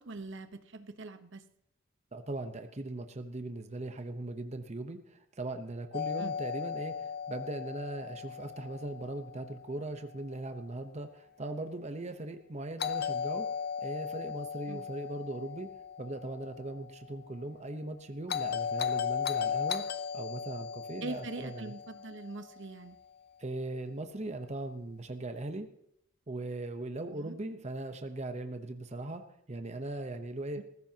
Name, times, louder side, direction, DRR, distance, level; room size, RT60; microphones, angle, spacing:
voice 1, 0.0-1.4 6.2-6.3 14.7-14.8 21.0-23.0 27.1-27.3 30.6-30.7, right 3 dB, 60° right, 9 dB, 1.0 m, -42 dB
voice 2, 2.1-13.5 13.8-15.7 16.0-19.8 20.1-21.7 23.4-25.7 26.3-30.6, right 2 dB, 35° right, 7 dB, 0.9 m, -39 dB
Doorbell, 5.9-9.9 12.8-17.0 18.3-22.7, left 7 dB, 50° left, 0.7 m, -36 dB
19.5 x 15.0 x 2.9 m, 0.74 s
head